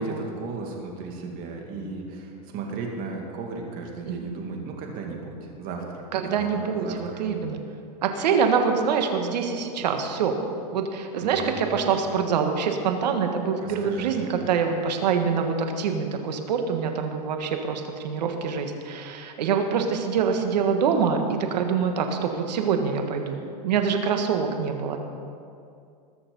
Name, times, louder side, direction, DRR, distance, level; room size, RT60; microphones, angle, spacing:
voice 1, 0.0-7.2 11.2-11.6 13.6-14.2, right 3 dB, 45° right, 1 dB, 2.4 m, -35 dB
voice 2, 4.1-4.4 6.1-7.6 8.0-10.3 10.7-23.4 23.6-25.0, right 6 dB, 85° right, 5 dB, 1.7 m, -25 dB
20.5 x 6.9 x 5.5 m, 2.5 s
supercardioid pair, 135°, 21 cm